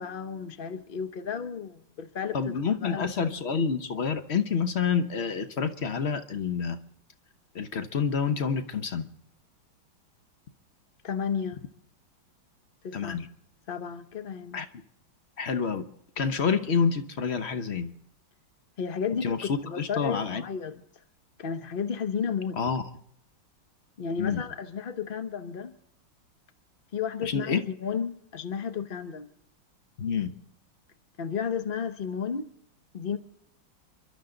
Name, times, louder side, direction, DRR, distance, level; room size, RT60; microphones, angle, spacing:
voice 1, 0.0-3.2 11.0-11.6 12.8-13.2 13.7-14.6 18.8-20.8 21.4-22.6 24.0-25.7 26.9-29.3 31.2-32.5 32.9-33.2, left 6 dB, 70° left, 0.5 m, -33 dB
voice 2, 2.3-6.8 7.5-9.1 12.9-13.3 14.5-14.7 15.4-15.9 16.2-17.9 19.2-20.4 22.6-22.8 24.2-24.4 27.2-27.6 30.0-30.3, left 6 dB, 45° left, 0.9 m, -28 dB
29.0 x 12.0 x 3.9 m
omnidirectional pair, 2.2 m